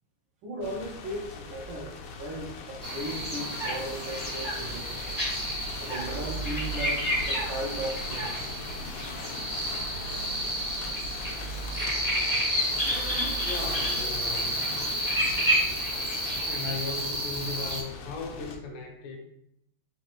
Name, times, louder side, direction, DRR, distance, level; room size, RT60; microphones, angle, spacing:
voice 1, 0.4-5.0 5.8-8.4, right 1 dB, 70° right, -7 dB, 1.5 m, -37 dB
sound 1, 0.6-18.6, left 1 dB, 90° left, 1.5 m, -39 dB
sound 2, 2.8-17.8, equal, 20° left, 0.5 m, -30 dB
voice 2, 13.4-14.7 16.4-19.2, left 4 dB, 75° left, 3 dB, 1.2 m, -37 dB
4.0 x 2.8 x 2.9 m, 0.76 s
omnidirectional pair, 2.4 m